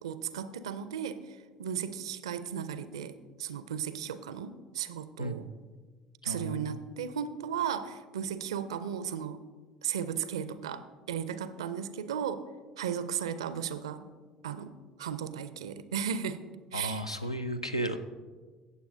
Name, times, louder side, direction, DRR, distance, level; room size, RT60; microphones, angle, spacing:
voice 1, 0.0-5.5 6.2-9.4 9.8-12.4 12.8-14.1 14.4-14.7 15.0-16.4 16.7-17.1, right 8 dB, 70° right, 13 dB, 0.4 m, -35 dB
voice 2, 6.3-6.8 16.7-18.0, right 1 dB, 85° left, 8 dB, 0.4 m, -34 dB
16.5 x 7.1 x 2.6 m, 1.4 s
figure-of-eight pair, 60°, 3 cm